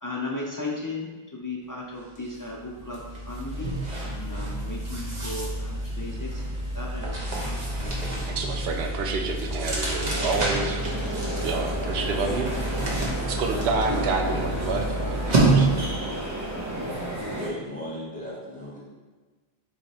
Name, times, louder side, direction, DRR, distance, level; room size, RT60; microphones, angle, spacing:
voice 1, 0.0-6.4 6.7-8.0, left 2 dB, 30° left, -4 dB, 0.3 m, -36 dB
sound 1, 2.2-2.3 2.7-16.1, right 2 dB, 45° right, 0.9 m, -28 dB
voice 2, 8.2-12.6 12.9-15.7, right 4 dB, 80° right, 4 dB, 0.8 m, -29 dB
sound 2, 10.0-17.5, right 1 dB, 20° right, 0.7 m, -32 dB
voice 3, 17.3-18.8, left 1 dB, 10° left, -8 dB, 1.0 m, -36 dB
3.7 x 3.2 x 4.1 m, 1.3 s
omnidirectional pair, 1.1 m